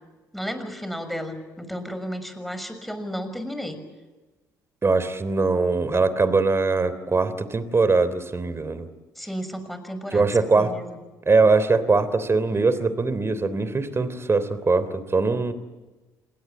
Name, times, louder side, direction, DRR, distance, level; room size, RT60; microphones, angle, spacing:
voice 1, 0.3-3.8 9.2-10.3 10.6-11.0, equal, ahead, 9 dB, 6.3 m, -33 dB
voice 2, 4.8-8.9 10.1-10.7 11.2-15.5, right 3 dB, 25° right, 14 dB, 3.3 m, -21 dB
27.5 x 22.5 x 8.9 m, 1.2 s
hypercardioid pair, 55°, 10 cm